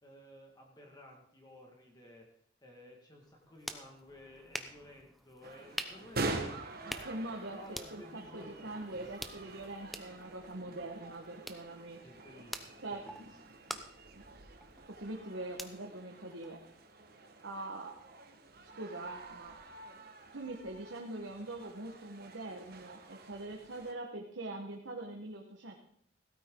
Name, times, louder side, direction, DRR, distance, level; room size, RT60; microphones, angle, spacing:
voice 1, 0.0-2.3 2.6-6.2 6.5-9.0 12.0-13.6, left 1 dB, 20° left, 0 dB, 1.8 m, -55 dB
sound 1, 3.2-16.9, equal, ahead, 0.7 m, -48 dB
sound 2, 5.4-23.9, right 2 dB, 55° right, 1.4 m, -46 dB
voice 2, 6.9-7.6 7.9-12.0 12.8-13.3 14.2-14.3 14.9-16.6 17.4-17.9 18.6-19.5 20.3-25.8, right 2 dB, 75° right, 1 dB, 1.3 m, -43 dB
16.0 x 13.5 x 3.8 m, 0.65 s
head